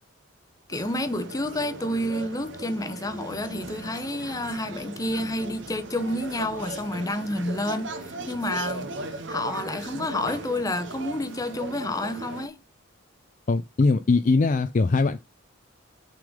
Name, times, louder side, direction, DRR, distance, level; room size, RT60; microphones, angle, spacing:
voice 1, 0.7-12.6, left 1 dB, 15° left, 0.7 m, -29 dB
sound 1, 0.7-12.5, right 2 dB, 60° right, 0.9 m, -38 dB
voice 2, 13.5-15.2, left 3 dB, 40° left, 0.4 m, -21 dB
6.0 x 3.9 x 5.0 m
head